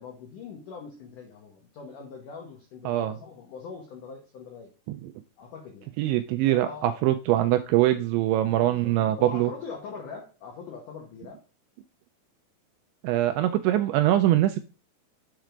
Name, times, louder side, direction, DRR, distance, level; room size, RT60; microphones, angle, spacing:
voice 1, 0.0-4.7 5.4-5.9 6.4-7.0 7.4-7.5 8.7-11.4, left 5 dB, 80° left, 1 dB, 1.8 m, -42 dB
voice 2, 2.9-3.2 4.9-5.1 6.0-9.5 13.0-14.6, right 14 dB, 85° right, 8 dB, 2.6 m, -23 dB
7.4 x 4.6 x 5.0 m, 0.33 s
omnidirectional pair, 5.6 m